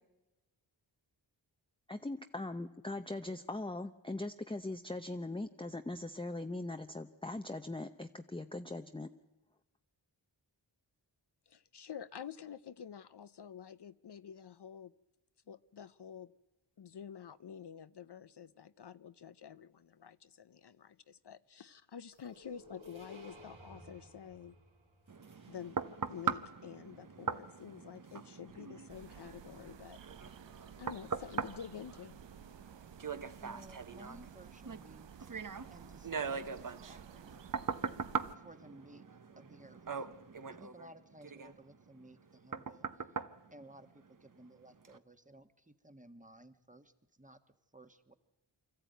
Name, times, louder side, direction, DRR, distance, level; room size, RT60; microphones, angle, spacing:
voice 1, 1.9-9.1, left 2 dB, 10° left, 7 dB, 0.7 m, -40 dB
voice 2, 11.5-14.9 15.5-16.3 16.8-24.6 25.5-25.8 26.1-30.0 30.8-32.2, left 8 dB, 60° left, 14 dB, 0.6 m, -49 dB
sound 1, 22.1-26.1, equal, 90° right, 3.8 m, -56 dB
sound 2, 25.1-44.3 44.8-45.0, right 5 dB, 45° right, 0.9 m, -42 dB
sound 3, 28.9-38.4, right 9 dB, 70° right, 0.7 m, -55 dB
voice 3, 33.4-35.4 35.7-37.5 38.3-39.0 39.4-40.0 40.5-43.1 43.5-47.4 47.7-48.1, right 1 dB, 15° right, 9 dB, 1.3 m, -57 dB
24.5 x 14.0 x 9.3 m, 1.0 s
wide cardioid pair, 55°, 46 cm